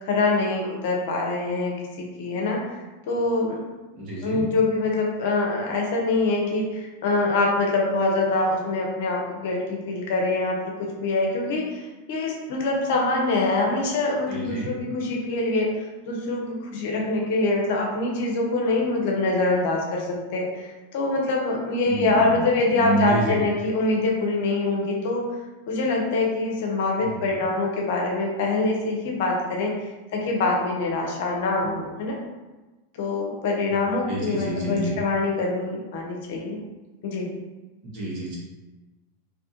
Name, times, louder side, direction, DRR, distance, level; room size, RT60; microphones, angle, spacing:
voice 1, 0.0-2.8 3.1-3.6 4.2-11.8 12.1-15.7 16.0-25.3 25.7-29.7 30.1-32.2 32.9-36.6 37.0-37.3, left 2 dB, 60° left, 0 dB, 0.6 m, -24 dB
voice 2, 3.9-4.5 14.3-14.7 21.8-22.4 22.8-23.5 27.0-27.1 27.4-27.5 31.6-31.7 34.1-35.0 37.9-38.4, right 2 dB, 45° right, -5 dB, 1.1 m, -29 dB
2.6 x 2.3 x 2.8 m, 1.2 s
hypercardioid pair, 95°, 0 cm